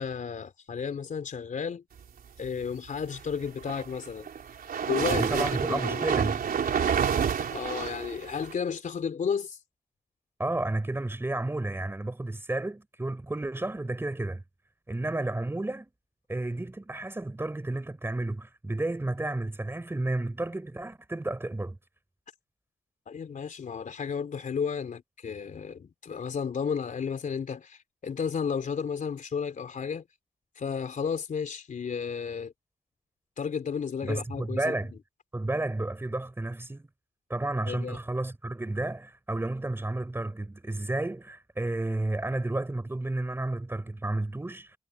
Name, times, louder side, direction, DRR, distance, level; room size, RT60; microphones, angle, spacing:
voice 1, 0.0-1.8 2.4-4.3 4.8-6.0 7.5-9.6 23.1-30.0 30.6-32.5 33.4-34.8 37.7-38.0, left 6 dB, 55° left, 3.7 m, -33 dB
sound 1, 3.4-8.5, right 7 dB, 70° right, 4.0 m, -29 dB
voice 2, 5.1-6.4 10.4-14.4 14.9-15.9 16.3-21.8 34.0-35.0 35.3-36.9 37.3-44.8, right 2 dB, 15° right, 4.4 m, -32 dB
wide cardioid pair, 150°, 16 cm